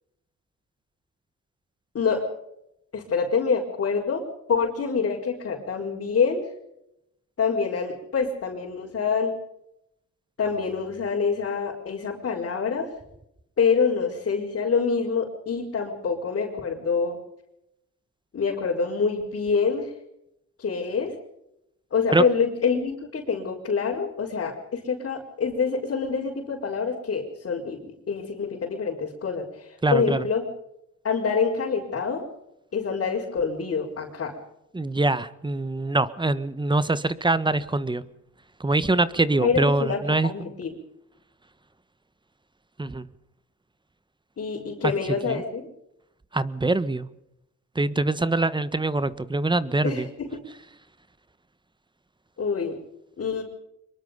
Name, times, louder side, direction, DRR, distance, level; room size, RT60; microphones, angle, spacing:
voice 1, 1.9-2.3 2.9-6.5 7.4-9.3 10.4-12.9 13.6-17.2 18.3-19.9 20.6-21.1 21.9-30.5 31.0-32.2 32.7-34.4 39.4-40.7 44.4-45.7 49.8-50.4 52.4-52.8 53.2-53.4, left 5 dB, 50° left, -3 dB, 5.1 m, -26 dB
voice 2, 29.8-30.3 34.7-38.0 38.6-40.3 42.8-43.1 44.8-44.9 45.3-45.4 46.3-47.1 47.7-50.1, right 2 dB, 15° right, 15 dB, 1.3 m, -24 dB
25.0 x 22.5 x 5.3 m, 0.82 s
cardioid pair, 90°, 30 cm